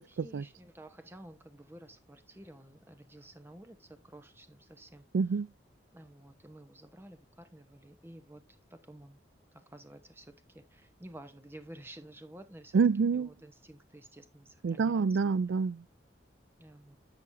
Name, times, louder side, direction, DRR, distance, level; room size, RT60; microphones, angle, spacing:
voice 1, 0.1-5.0 5.9-8.4 8.7-9.2 9.5-12.8 13.1-15.3 16.6-17.0, right 1 dB, 10° right, 0.9 m, -52 dB
voice 2, 5.1-5.5 12.7-13.3 14.6-15.8, right 5 dB, 75° right, 0.4 m, -27 dB
11.0 x 7.0 x 2.6 m
head